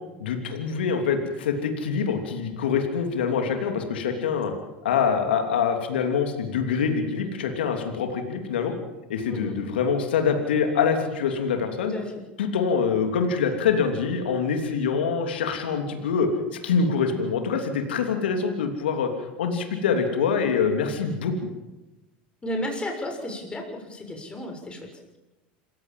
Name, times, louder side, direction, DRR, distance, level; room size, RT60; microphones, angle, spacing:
voice 1, 0.2-4.5 4.8-8.7 9.1-11.9 12.4-16.3 16.6-19.1 19.4-21.3, left 6 dB, 80° left, 5 dB, 3.1 m, -25 dB
voice 2, 22.4-24.8, left 1 dB, 20° left, 2 dB, 6.8 m, -33 dB
27.0 x 16.0 x 7.7 m, 1.0 s
hypercardioid pair, 90°, 6 cm